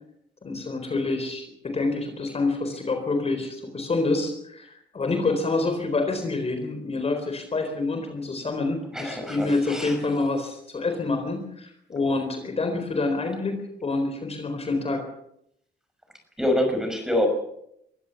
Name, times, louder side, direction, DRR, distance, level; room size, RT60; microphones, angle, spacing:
voice 1, 0.4-15.0, left 3 dB, 35° left, 6 dB, 4.2 m, -27 dB
voice 2, 8.9-10.0 16.4-17.3, left 1 dB, 5° right, 5 dB, 6.0 m, -25 dB
23.0 x 16.0 x 7.2 m, 0.75 s
cardioid pair, 135°, 19 cm